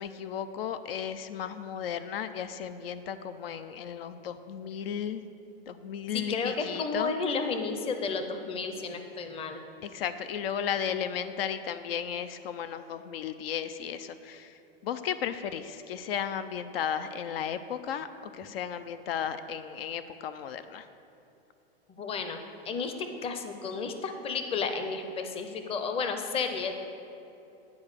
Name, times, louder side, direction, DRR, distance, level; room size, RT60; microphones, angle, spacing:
voice 1, 0.0-5.3 5.7-7.1 9.8-20.9, left 8 dB, 75° left, 11 dB, 0.5 m, -35 dB
voice 2, 6.1-9.6 22.0-22.4 22.6-22.9 23.2-26.8, left 4 dB, 20° left, 6 dB, 0.6 m, -32 dB
9.4 x 4.8 x 6.7 m, 2.8 s
hypercardioid pair, 125°, 30 cm